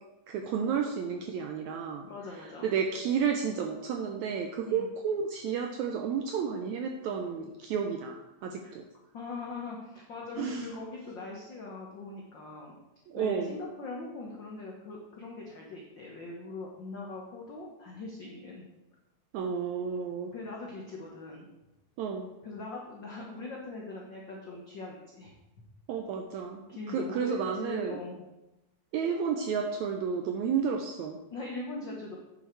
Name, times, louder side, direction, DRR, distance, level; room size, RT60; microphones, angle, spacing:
voice 1, 0.3-8.8 10.4-10.7 13.1-13.6 19.3-20.3 22.0-22.3 25.9-28.0 28.9-31.2, right 6 dB, 80° right, 4 dB, 1.6 m, -32 dB
voice 2, 2.1-2.7 4.6-4.9 8.6-8.7 9.1-12.7 13.1-18.7 20.3-21.5 22.4-25.3 26.7-28.2 31.3-32.2, left 3 dB, 85° left, -2 dB, 1.0 m, -41 dB
8.7 x 6.7 x 4.5 m, 0.98 s
omnidirectional pair, 3.9 m